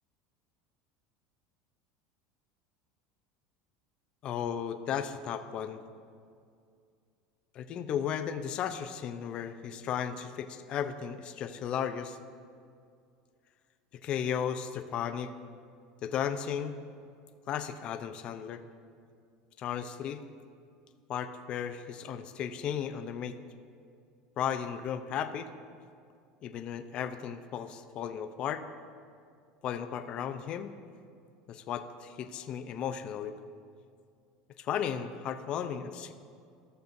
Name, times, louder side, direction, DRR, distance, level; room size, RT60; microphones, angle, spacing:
voice 1, 4.2-5.8 7.5-12.2 14.0-15.3 16.0-16.8 17.5-18.6 19.6-20.2 21.1-23.4 24.4-25.5 26.4-28.6 29.6-30.7 31.5-33.3 34.6-36.1, left 8 dB, 40° left, 8 dB, 0.5 m, -35 dB
14.5 x 6.8 x 2.6 m, 2.3 s
supercardioid pair, 130°, 2 cm